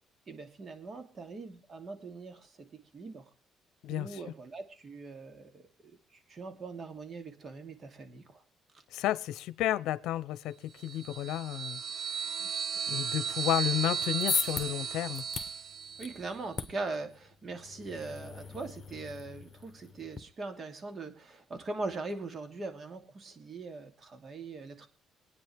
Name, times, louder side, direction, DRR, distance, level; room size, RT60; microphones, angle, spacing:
voice 1, 0.3-3.2 3.9-8.4 12.4-12.5 16.0-24.9, right 3 dB, 45° right, 2.8 m, -41 dB
voice 2, 3.8-4.2 8.9-11.8 12.9-15.2, left 13 dB, 85° left, 0.7 m, -32 dB
sound 1, 10.8-16.3, right 7 dB, 65° right, 0.7 m, -35 dB
sound 2, 13.9-20.2, left 5 dB, 35° left, 1.7 m, -39 dB
25.0 x 9.7 x 3.4 m
cardioid pair, 85°, 0 cm